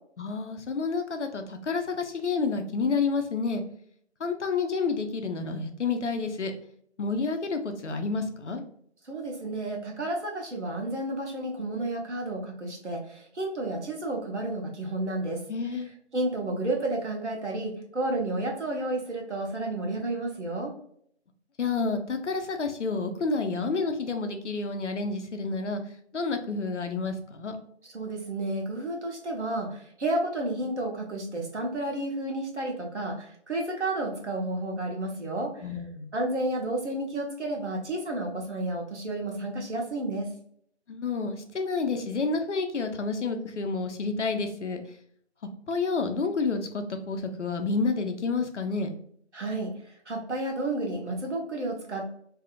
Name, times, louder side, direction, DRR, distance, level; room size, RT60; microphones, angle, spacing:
voice 1, 0.2-3.6 4.2-6.5 7.0-8.6 15.5-15.9 21.6-25.8 26.1-27.5 35.6-36.1 40.9-44.8 45.7-48.9, left 4 dB, 80° left, 6 dB, 0.6 m, -29 dB
voice 2, 9.0-15.4 16.1-20.7 27.9-35.6 36.1-40.3 49.3-52.0, right 2 dB, 75° right, 0 dB, 1.0 m, -31 dB
2.7 x 2.5 x 2.4 m, 0.65 s
figure-of-eight pair, 165°, 35 cm